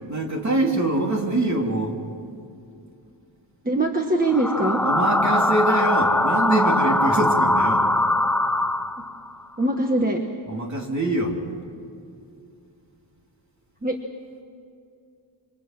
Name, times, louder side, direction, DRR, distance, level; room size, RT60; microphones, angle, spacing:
voice 1, 0.1-2.0 4.8-7.9 10.5-11.4, right 1 dB, 40° right, 1 dB, 3.4 m, -24 dB
voice 2, 3.6-4.8 9.6-10.2 13.8-14.0, right 1 dB, 20° right, 2 dB, 1.3 m, -22 dB
sound 1, 4.2-9.3, left 1 dB, 5° left, 0.5 m, -21 dB
28.0 x 25.0 x 6.1 m, 2.5 s
wide cardioid pair, 175°, 45 cm